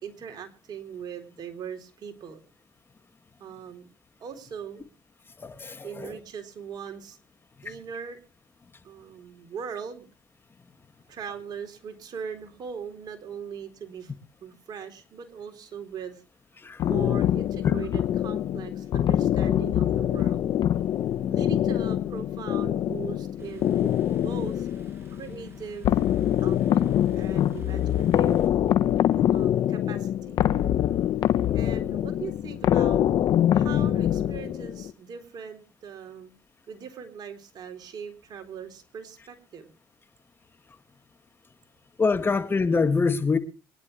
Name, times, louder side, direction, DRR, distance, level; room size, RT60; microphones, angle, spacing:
voice 1, 0.0-2.4 3.4-3.9 4.2-4.9 5.8-7.2 7.6-8.2 8.8-10.1 11.1-14.1 14.4-16.2 16.8-20.4 21.3-23.8 24.2-24.7 25.1-26.0 26.4-26.8 27.1-28.5 29.3-30.4 31.5-33.0 33.5-36.3 36.7-39.7, right 7 dB, 55° right, 3.7 m, -40 dB
voice 2, 5.4-6.2 7.6-7.7 16.6-16.8 17.6-17.7 42.0-43.4, left 4 dB, 30° left, 2.2 m, -25 dB
sound 1, 16.8-34.9, left 11 dB, 60° left, 1.2 m, -24 dB
sound 2, 23.4-28.5, right 1 dB, 30° right, 7.3 m, -52 dB
24.0 x 11.0 x 3.3 m
supercardioid pair, 70°, 8 cm